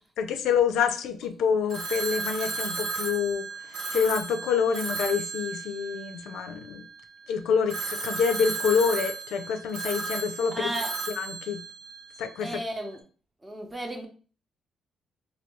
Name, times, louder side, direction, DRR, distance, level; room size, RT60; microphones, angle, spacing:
voice 1, 0.2-6.8 7.3-10.7 11.2-11.6 12.2-12.6, left 7 dB, 85° left, 8 dB, 0.3 m, -27 dB
Telephone, 1.7-6.9 7.7-12.6, right 4 dB, 65° right, 0.6 m, -34 dB
voice 2, 10.5-10.9 12.4-13.0 13.4-14.1, right 1 dB, 15° right, 3 dB, 0.7 m, -33 dB
3.2 x 2.2 x 3.0 m, 0.38 s
cardioid pair, 90°, 0 cm